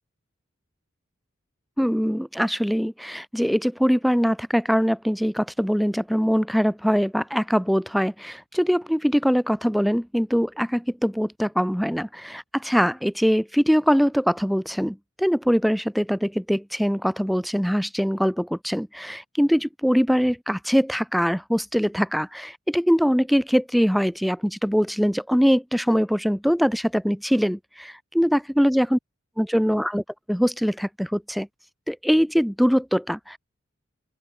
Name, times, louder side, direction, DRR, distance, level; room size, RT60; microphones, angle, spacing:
voice 1, 1.8-29.0 29.4-31.5 31.9-33.4, equal, ahead, 0.5 m, -22 dB
open air
head